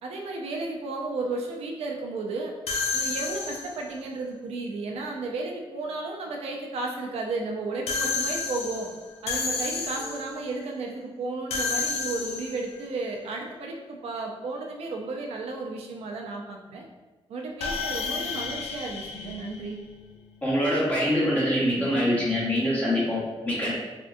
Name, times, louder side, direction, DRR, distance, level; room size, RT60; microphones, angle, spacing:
voice 1, 0.0-2.5 2.9-8.9 9.2-16.8 17.3-19.8, right 3 dB, 80° right, 1 dB, 0.4 m, -33 dB
sound 1, 2.7-3.9 7.9-10.4 11.5-12.8 17.6-20.1, left 4 dB, 85° left, 0.4 m, -31 dB
voice 2, 20.4-23.7, equal, 15° left, -8 dB, 1.1 m, -24 dB
3.5 x 2.2 x 2.5 m, 1.2 s
wide cardioid pair, 130°, 10 cm